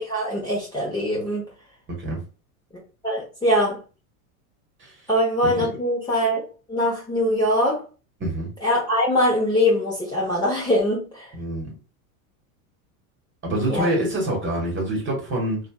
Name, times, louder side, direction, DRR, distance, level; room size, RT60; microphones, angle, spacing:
voice 1, 0.0-1.4 3.0-3.8 5.1-6.4 6.7-7.8 8.6-11.3 13.7-13.9, left 1 dB, 10° left, 0.9 m, -22 dB
voice 2, 11.3-11.7 13.4-15.6, right 1 dB, 25° right, 1.3 m, -26 dB
3.2 x 2.5 x 2.3 m
supercardioid pair, 125°, 44 cm